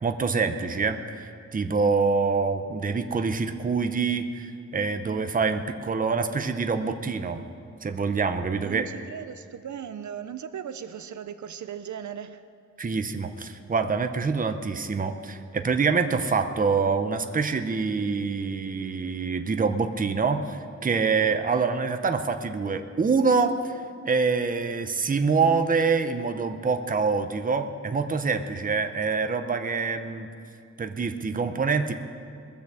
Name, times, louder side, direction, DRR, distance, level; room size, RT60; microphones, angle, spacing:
voice 1, 0.0-4.5 4.7-7.4 7.8-8.9 12.8-23.8 24.1-30.3 30.8-31.9, right 4 dB, 30° right, 7 dB, 0.6 m, -25 dB
voice 2, 8.5-12.4 28.5-28.9, right 8 dB, 75° right, 11 dB, 0.6 m, -38 dB
21.0 x 7.0 x 7.5 m, 2.3 s
wide cardioid pair, 180°, 30 cm